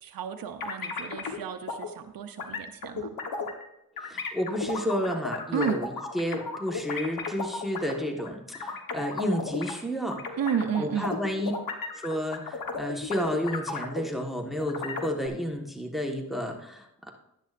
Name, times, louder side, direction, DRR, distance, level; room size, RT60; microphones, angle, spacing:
voice 1, 0.0-3.1 5.5-5.8 10.3-11.1, right 8 dB, 90° right, 5 dB, 0.6 m, -32 dB
sound 1, 0.6-1.4 1.7-1.9 2.4-3.7 4.0-9.7 10.1-14.3 14.6-15.3, left 4 dB, 85° left, 1.2 m, -34 dB
voice 2, 4.0-10.2 10.8-11.5 11.9-17.1, equal, ahead, 2 dB, 1.4 m, -31 dB
12.0 x 10.0 x 2.5 m, 0.82 s
cardioid pair, 55°, 34 cm